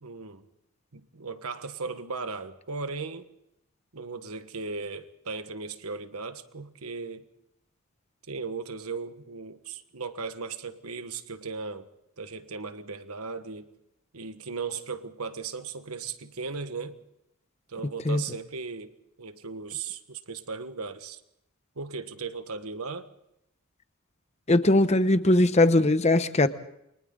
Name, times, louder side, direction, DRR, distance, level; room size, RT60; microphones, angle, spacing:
voice 1, 0.0-0.4 0.9-3.3 3.9-7.3 8.3-11.9 12.2-13.7 14.1-17.0 17.7-18.9 19.2-21.2 21.8-23.1, right 4 dB, 85° right, 1.3 m, -37 dB
voice 2, 24.5-26.5, left 2 dB, 30° left, 0.9 m, -20 dB
29.0 x 24.0 x 3.8 m
head